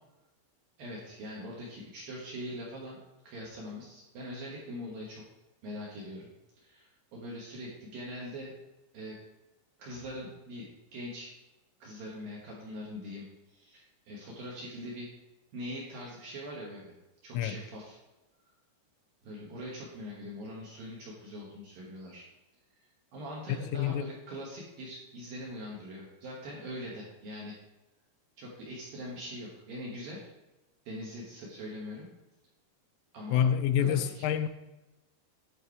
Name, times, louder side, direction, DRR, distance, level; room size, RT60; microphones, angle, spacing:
voice 1, 0.8-3.0 3.2-5.2 5.6-6.3 6.6-8.5 8.9-9.2 9.8-10.7 10.9-11.3 11.8-15.1 15.5-16.9 17.2-18.0 19.2-22.2 23.1-27.5 28.4-30.3 30.9-32.1 33.1-33.5 33.8-34.3, equal, 60° right, 2.6 m, -42 dB
voice 2, 23.7-24.0 33.3-34.5, left 9 dB, 85° left, 3.1 m, -27 dB
11.5 x 4.6 x 4.6 m
omnidirectional pair, 5.8 m